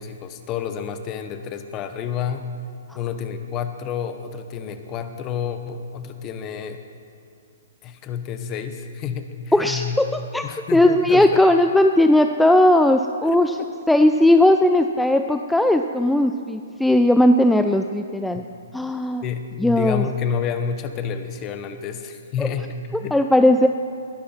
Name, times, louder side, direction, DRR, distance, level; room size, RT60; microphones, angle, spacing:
voice 1, 0.0-2.5 2.9-6.8 7.8-10.0 10.4-11.4 13.3-13.7 19.2-23.2, left 7 dB, 30° left, 8 dB, 1.1 m, -29 dB
voice 2, 9.5-13.5 13.9-18.4 18.7-19.2 19.6-20.0 22.4-22.5 23.1-23.7, left 1 dB, 5° left, 6 dB, 0.4 m, -17 dB
20.5 x 11.5 x 4.5 m, 2.3 s
hypercardioid pair, 145°, 0 cm